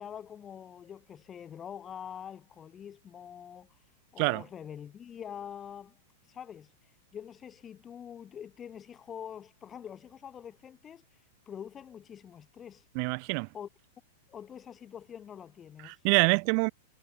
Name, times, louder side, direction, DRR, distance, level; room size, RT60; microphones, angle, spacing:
voice 1, 0.0-3.8 4.1-6.0 6.2-12.9 13.5-13.7 14.3-16.1, left 8 dB, 25° left, 2.2 m, -45 dB
voice 2, 12.9-13.5 15.8-16.7, right 40 dB or more, 50° right, 0.8 m, -26 dB
hypercardioid pair, 130°, 0 cm